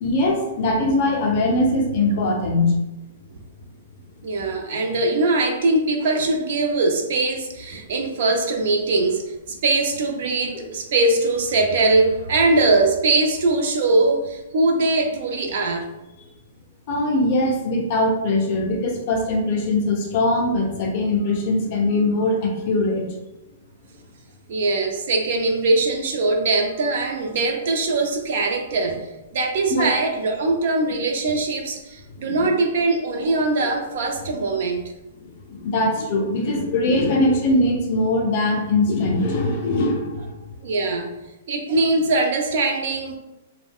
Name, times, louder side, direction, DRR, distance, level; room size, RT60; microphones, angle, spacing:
voice 1, 0.0-2.7 10.6-10.7 16.9-23.1 29.7-29.9 32.2-32.5 35.5-40.3, left 2 dB, 30° left, 0 dB, 0.4 m, -21 dB
voice 2, 4.2-15.9 24.5-29.1 29.3-34.8 40.6-41.1 41.5-43.2, right 2 dB, 45° right, 2 dB, 0.4 m, -21 dB
2.3 x 2.1 x 3.5 m, 0.99 s
hypercardioid pair, 180°, 0 cm